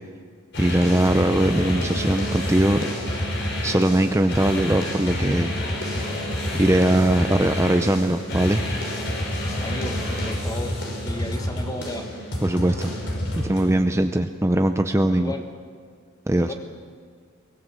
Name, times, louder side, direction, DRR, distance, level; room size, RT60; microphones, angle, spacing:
sound 1, 0.5-13.7, left 1 dB, 60° left, 5.9 m, -28 dB
voice 1, 0.6-2.9 3.6-5.6 6.5-8.6 12.4-12.9 13.3-15.3 16.3-16.5, right 1 dB, 15° right, 7 dB, 0.6 m, -21 dB
voice 2, 9.6-10.0 10.3-10.8 11.0-12.1 15.2-15.4 16.3-16.5, left 1 dB, 20° left, 5 dB, 1.9 m, -33 dB
24.0 x 18.0 x 7.4 m, 2.1 s
head